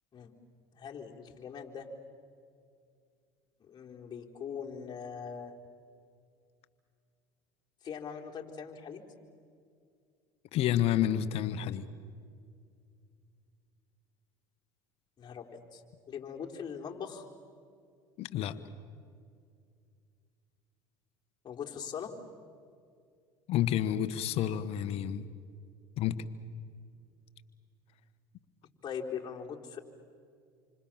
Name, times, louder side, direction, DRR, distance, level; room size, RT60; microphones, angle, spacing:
voice 1, 0.7-1.9 3.7-5.5 7.8-9.0 15.2-15.8 16.1-17.2 21.4-22.1 28.8-29.8, left 7 dB, 35° left, 0 dB, 3.9 m, -41 dB
voice 2, 10.5-11.8 18.2-18.6 23.5-25.2 26.0-26.2, left 11 dB, 55° left, 13 dB, 1.5 m, -29 dB
28.0 x 25.5 x 7.6 m, 2.3 s
hypercardioid pair, 80°, 12 cm